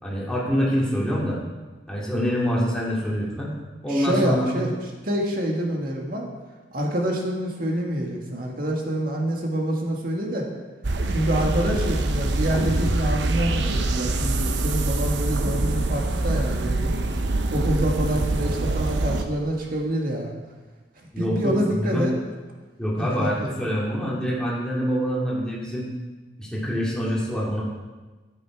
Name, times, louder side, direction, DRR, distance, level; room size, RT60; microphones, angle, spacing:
voice 1, 0.0-1.4 1.9-3.5 3.8-4.6 21.1-22.1 22.8-25.9 26.4-27.6, equal, 5° left, -6 dB, 2.7 m, -25 dB
voice 2, 3.9-4.7 5.0-6.3 6.7-10.5 11.1-16.9 17.5-20.3 21.2-22.1 23.0-23.5, right 1 dB, 55° right, 0 dB, 1.8 m, -26 dB
sound 1, 10.8-19.2, right 2 dB, 85° right, 0.8 m, -24 dB
10.5 x 9.1 x 4.7 m, 1.3 s
head